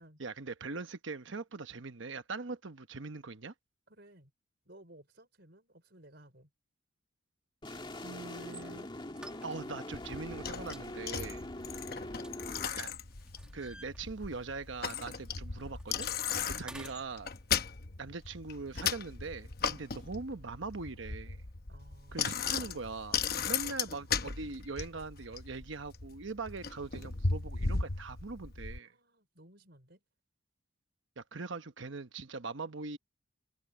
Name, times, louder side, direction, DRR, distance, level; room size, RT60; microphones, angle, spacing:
voice 1, 0.2-3.5 7.7-8.9 9.4-11.5 12.7-12.9 13.5-16.1 16.4-17.3 18.0-21.4 22.1-23.2 23.5-28.9 31.2-33.0, right 3 dB, 70° right, 1.0 m, -41 dB
voice 2, 3.9-4.3 4.7-6.5 11.3-12.2 21.7-22.8 28.7-30.0, right 1 dB, 55° right, 5.2 m, -59 dB
sound 1, 7.6-12.7, left 1 dB, 25° left, 2.1 m, -43 dB
sound 2, 8.4-8.7 9.2-9.9 10.2-10.4 10.7-12.8 13.1-14.6 14.8-15.0 15.3-17.1, right 1 dB, 5° right, 1.8 m, -51 dB
Bicycle, 9.9-28.8, left 5 dB, 50° left, 1.0 m, -37 dB
head